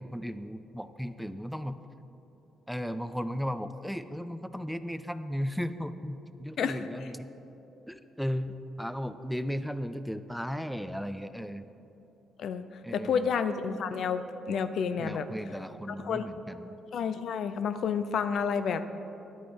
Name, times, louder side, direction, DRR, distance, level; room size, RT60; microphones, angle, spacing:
voice 1, 0.0-1.8 2.7-7.3 7.9-11.6 12.8-13.3 15.0-16.8, equal, ahead, 12 dB, 0.4 m, -35 dB
voice 2, 12.9-15.3 15.9-16.3 16.9-18.9, left 6 dB, 65° left, 11 dB, 0.5 m, -30 dB
11.0 x 9.0 x 5.1 m, 3.0 s
cardioid pair, 90°, 0 cm